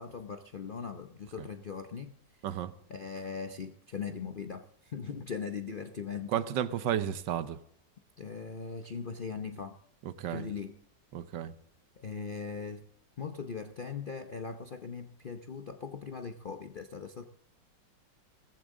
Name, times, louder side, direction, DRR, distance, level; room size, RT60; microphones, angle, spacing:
voice 1, 0.0-2.1 2.9-6.3 8.2-9.8 10.3-10.7 12.0-12.8 13.2-17.2, left 5 dB, 55° left, 0.5 m, -40 dB
voice 2, 6.3-7.6 10.0-10.5 11.1-11.5, right 10 dB, 75° right, 1.5 m, -32 dB
17.0 x 14.5 x 3.7 m
omnidirectional pair, 2.0 m